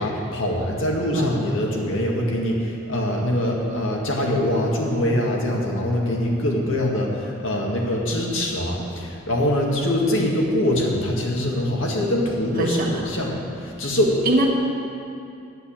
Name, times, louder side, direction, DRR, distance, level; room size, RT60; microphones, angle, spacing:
voice 1, 0.0-14.2, left 1 dB, 80° left, -1 dB, 1.8 m, -23 dB
voice 2, 12.6-13.0 14.2-14.5, right 1 dB, 45° right, 0 dB, 1.5 m, -22 dB
9.7 x 8.1 x 7.3 m, 2.6 s
head